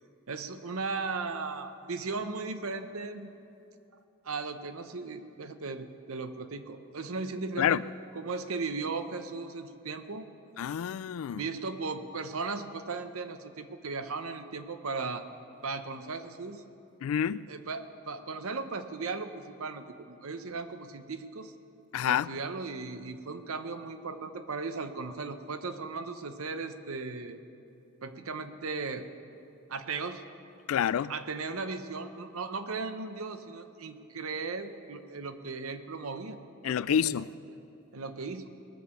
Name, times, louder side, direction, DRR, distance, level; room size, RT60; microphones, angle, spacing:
voice 1, 0.3-3.3 4.2-7.8 8.1-10.3 11.3-15.3 15.6-16.6 17.5-21.5 22.1-27.4 28.0-29.1 29.7-30.2 31.1-37.6 37.9-38.5, right 4 dB, 80° right, 0.8 m, -37 dB
voice 2, 10.6-11.4 17.0-17.5 21.9-22.3 30.7-31.1 36.6-37.3, left 8 dB, 75° left, 0.3 m, -28 dB
20.0 x 7.1 x 6.8 m
head